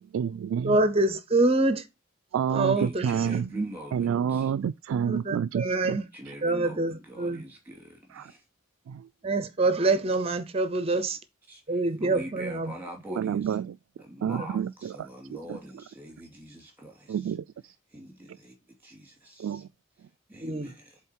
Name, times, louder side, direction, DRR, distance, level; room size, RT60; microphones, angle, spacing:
voice 1, 0.0-0.8 2.3-3.5 3.9-6.0 8.2-8.3 8.9-9.1 13.2-13.8 14.2-14.7 15.0-15.1 17.1-17.4 19.4-19.7, right 8 dB, 85° right, 0.3 m, -28 dB
voice 2, 0.6-1.9 2.5-3.7 5.0-6.1 6.4-7.4 9.2-11.2 11.7-12.7 13.1-13.2 14.4-14.5 20.4-20.7, right 2 dB, 30° right, 0.6 m, -26 dB
voice 3, 2.8-4.5 6.1-8.4 10.9-11.0 11.5-13.6 14.0-17.3 17.9-19.6 20.3-21.0, right 1 dB, 10° right, 2.3 m, -44 dB
8.3 x 3.7 x 4.4 m
head